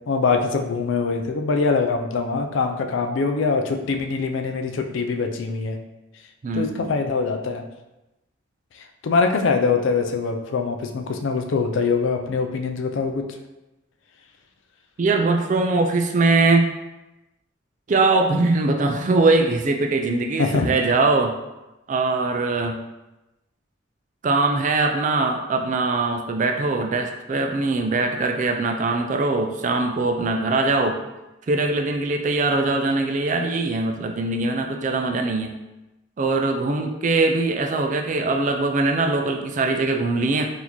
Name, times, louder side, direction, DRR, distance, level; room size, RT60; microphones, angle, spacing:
voice 1, 0.0-5.8 6.5-7.6 8.7-13.3 20.4-20.7, left 4 dB, 70° left, 4 dB, 0.4 m, -23 dB
voice 2, 6.4-6.8 15.0-16.7 17.9-21.3 21.9-22.8 24.2-31.0 31.5-35.5 36.2-40.5, right 3 dB, 40° right, 4 dB, 0.3 m, -21 dB
4.0 x 2.6 x 3.0 m, 1.0 s
head